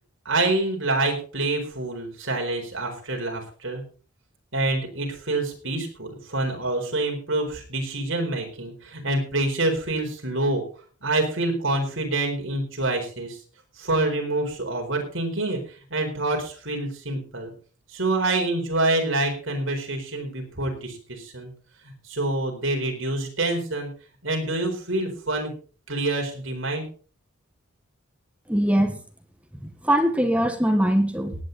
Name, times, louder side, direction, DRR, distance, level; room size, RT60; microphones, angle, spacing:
voice 1, 0.2-3.8 4.5-10.6 11.0-13.4 13.8-17.5 17.9-21.5 21.8-23.9 24.2-25.5 25.9-26.8, right 2 dB, 60° right, 2 dB, 4.5 m, -26 dB
voice 2, 28.5-29.0 29.6-31.3, equal, 5° right, 6 dB, 1.4 m, -22 dB
18.5 x 9.3 x 4.1 m, 0.39 s
head